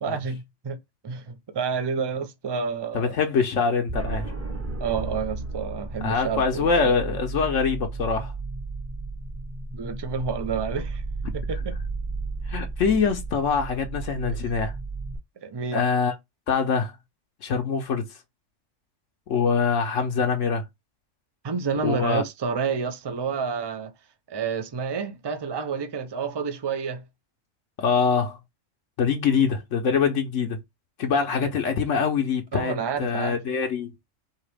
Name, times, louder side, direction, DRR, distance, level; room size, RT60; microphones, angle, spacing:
voice 1, 0.0-3.2 4.8-6.9 9.7-11.0 11.3-11.8 14.3-14.4 15.4-15.8 21.4-23.9 24.3-27.1 31.3-31.5 32.5-33.4, right 5 dB, 35° right, 0.4 m, -29 dB
voice 2, 2.9-4.3 6.0-8.3 12.5-14.7 15.7-16.1 16.5-16.9 17.4-18.1 19.3-20.6 21.8-22.2 27.8-28.4 29.0-30.6 31.0-32.7 33.0-33.9, left 5 dB, 80° left, 1.2 m, -24 dB
sound 1, 3.9-15.2, right 3 dB, 15° right, 0.8 m, -33 dB
4.8 x 2.9 x 3.3 m
omnidirectional pair, 1.3 m